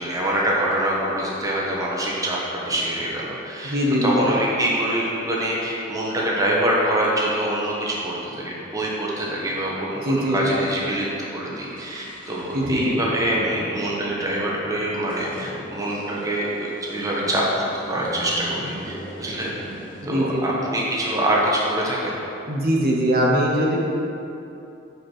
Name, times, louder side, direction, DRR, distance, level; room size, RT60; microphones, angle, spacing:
voice 1, 0.0-19.5 20.0-22.2, right 1 dB, 20° right, -4 dB, 1.1 m, -25 dB
sound 1, 1.3-3.9 4.5-4.6 4.9-5.1 5.5-9.2 9.4-9.5 9.7-9.8 10.4-10.6 10.9-20.0, equal, 5° left, 1.9 m, -41 dB
voice 2, 3.6-4.3 10.0-10.5 12.5-13.0 20.0-20.6 22.5-23.8, equal, 50° right, -2 dB, 1.1 m, -21 dB
6.6 x 5.4 x 6.0 m, 2.9 s
head